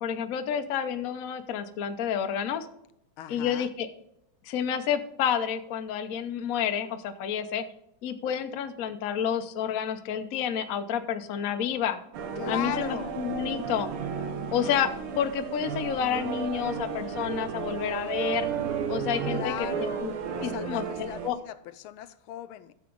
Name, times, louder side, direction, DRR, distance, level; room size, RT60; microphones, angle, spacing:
voice 1, 0.0-2.7 3.3-3.9 4.4-7.6 8.0-12.0 12.5-13.9 14.5-18.5 18.9-20.1 20.4-21.4, left 8 dB, 60° left, 8 dB, 0.9 m, -29 dB
voice 2, 3.2-3.7 12.4-13.2 19.2-22.7, left 12 dB, 90° left, 13 dB, 1.5 m, -38 dB
sound 1, 12.1-21.3, right 6 dB, 80° right, 1.8 m, -33 dB
12.0 x 6.9 x 3.8 m, 0.79 s
omnidirectional pair, 2.3 m